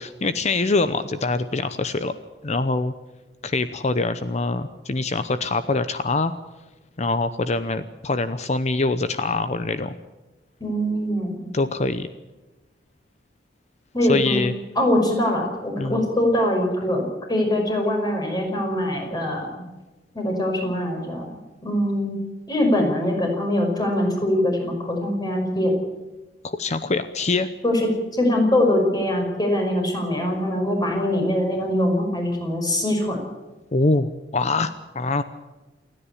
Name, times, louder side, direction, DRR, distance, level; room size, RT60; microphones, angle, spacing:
voice 1, 0.0-2.1 2.4-2.9 3.4-6.3 7.0-9.9 11.5-12.1 14.1-14.5 15.8-16.0 26.4-27.5 33.7-35.2, left 3 dB, 40° left, 12 dB, 0.8 m, -24 dB
voice 2, 10.6-11.5 13.9-14.5 14.8-19.6 20.1-21.3 21.6-22.2 22.5-25.7 27.6-33.2, left 1 dB, 25° left, 1 dB, 5.6 m, -23 dB
28.0 x 10.0 x 9.9 m, 1.1 s
head